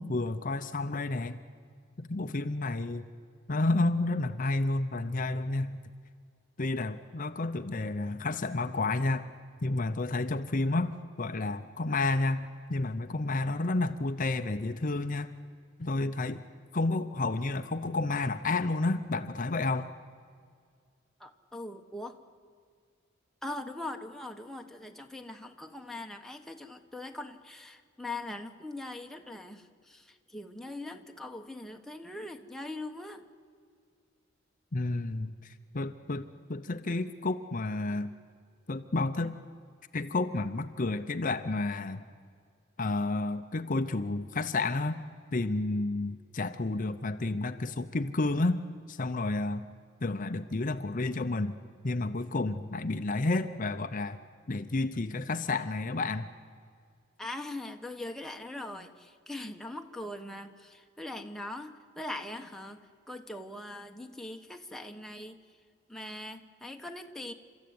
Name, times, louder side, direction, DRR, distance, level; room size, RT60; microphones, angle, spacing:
voice 1, 0.0-1.4 2.0-3.1 3.5-5.8 6.6-9.3 9.6-10.9 11.2-15.3 15.8-16.4 16.7-19.9 34.7-38.1 38.7-39.4 39.9-42.0 42.8-45.0 45.3-49.7 50.0-51.5 51.8-54.2 54.5-56.3, left 2 dB, 45° left, 9 dB, 0.7 m, -31 dB
voice 2, 21.2-22.2 23.4-33.2 57.2-65.4 65.9-67.3, left 2 dB, ahead, 3 dB, 1.2 m, -41 dB
29.5 x 14.0 x 9.5 m, 2.1 s
head